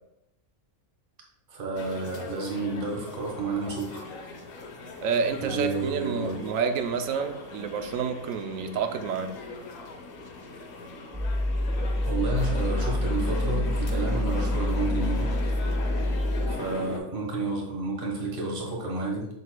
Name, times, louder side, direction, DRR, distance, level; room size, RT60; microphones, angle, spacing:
voice 1, 1.5-4.1 5.4-6.4 12.0-15.3 16.5-19.3, right 3 dB, 40° right, -1 dB, 1.5 m, -31 dB
sound 1, 1.7-17.0, left 3 dB, 65° left, 1.2 m, -39 dB
voice 2, 5.0-9.4, right 6 dB, 70° right, 7 dB, 1.0 m, -29 dB
sound 2, 11.1-16.5, left 1 dB, 10° right, 0.5 m, -27 dB
6.9 x 6.6 x 2.2 m, 0.82 s
omnidirectional pair, 1.5 m